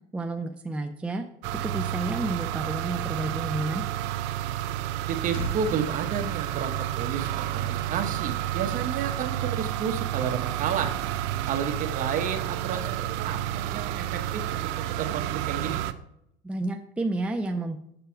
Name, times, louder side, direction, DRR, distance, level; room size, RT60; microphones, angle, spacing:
voice 1, 0.1-1.2 1.6-3.8 16.4-17.8, right 2 dB, 5° right, 4 dB, 0.5 m, -30 dB
sound 1, 1.4-15.9, right 12 dB, 75° right, 0.7 m, -30 dB
sound 2, 4.8-7.3 7.5-7.8, left 3 dB, 60° left, 1.7 m, -42 dB
voice 2, 5.1-10.9 11.5-15.8, right 7 dB, 45° right, 6 dB, 1.2 m, -31 dB
8.4 x 6.9 x 4.5 m, 0.76 s
cardioid pair, 135°, 19 cm